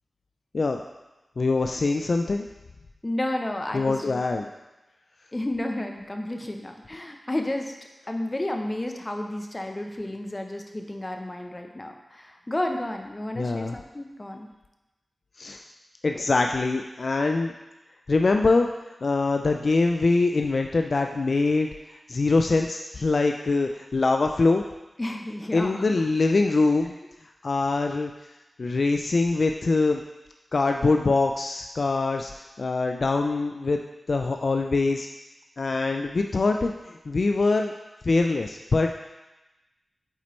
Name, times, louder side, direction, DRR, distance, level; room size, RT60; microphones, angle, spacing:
voice 1, 1.4-2.5 3.7-4.5 13.3-13.8 15.4-15.6 16.0-17.5 18.1-24.6 25.5-27.0 27.4-28.1 28.6-30.0 30.5-33.8 34.1-35.1 35.6-37.7 38.0-38.9, left 3 dB, 60° left, 4 dB, 0.3 m, -23 dB
voice 2, 3.0-4.2 5.3-7.7 8.1-14.5 25.0-26.0, left 1 dB, 25° left, 3 dB, 0.7 m, -31 dB
8.2 x 4.3 x 3.1 m, 1.0 s
cardioid pair, 60°, 0 cm